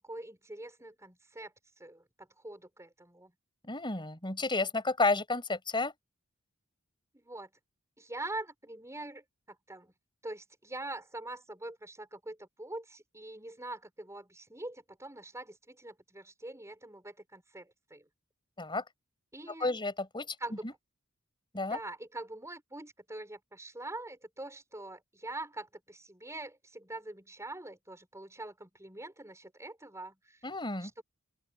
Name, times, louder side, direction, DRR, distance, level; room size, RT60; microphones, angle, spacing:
voice 1, 0.0-3.3 7.1-7.5 8.0-9.9 10.2-18.1 19.3-19.8 20.4-20.7 21.7-30.4 30.8-31.0, right 2 dB, 15° right, 6.6 m, -44 dB
voice 2, 3.7-5.9 18.6-18.8 19.6-20.3 20.6-20.7 21.5-21.8 30.4-30.9, left 3 dB, 25° left, 6.6 m, -31 dB
open air
head